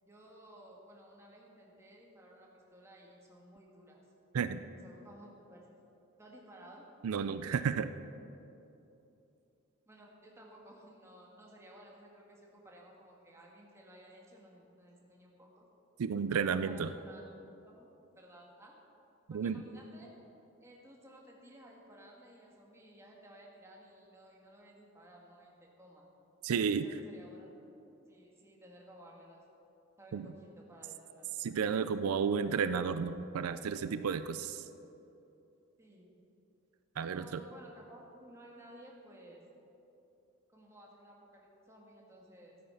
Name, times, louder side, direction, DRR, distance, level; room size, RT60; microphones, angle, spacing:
voice 1, 0.0-4.0 4.8-5.7 6.2-6.9 9.8-15.7 16.3-18.7 19.3-20.1 20.6-26.1 26.6-27.5 28.1-29.4 30.0-31.3 35.8-36.1 37.1-39.4 40.5-42.6, right 1 dB, 10° right, -2 dB, 1.7 m, -56 dB
voice 2, 7.0-7.9 16.0-16.9 19.3-19.6 26.4-26.9 30.1-30.3 31.4-34.7 37.0-37.4, right 6 dB, 85° right, 12 dB, 0.4 m, -32 dB
13.5 x 8.6 x 5.6 m, 2.9 s
head